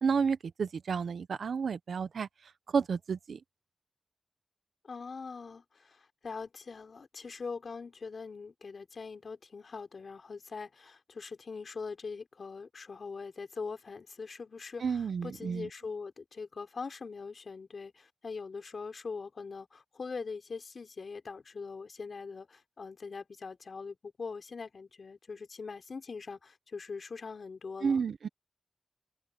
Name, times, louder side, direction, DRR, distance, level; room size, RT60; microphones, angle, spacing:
voice 1, 0.0-2.3 2.7-3.4 14.8-15.7 27.8-28.3, right 6 dB, 85° right, 0.8 m, -31 dB
voice 2, 4.8-28.0, left 4 dB, 65° left, 4.5 m, -42 dB
cardioid pair, 65°, 0 cm